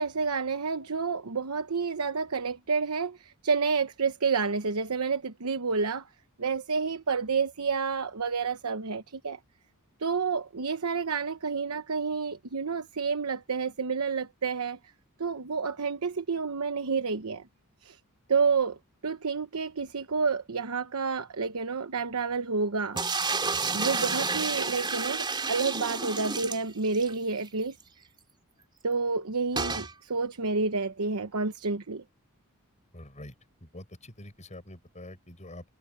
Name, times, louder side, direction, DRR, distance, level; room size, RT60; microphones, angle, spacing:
voice 1, 0.0-6.0 6.4-9.4 10.0-14.8 15.2-17.5 17.8-18.0 18.3-18.8 19.0-23.0 23.7-27.8 28.8-32.0, right 4 dB, 80° right, 1.0 m, -29 dB
sound 1, 23.0-27.1 27.5-27.6 27.8-27.9 29.6-29.9, right 4 dB, 20° right, 3.5 m, -30 dB
voice 2, 32.9-33.3 33.6-35.6, left 1 dB, 35° left, 7.8 m, -45 dB
head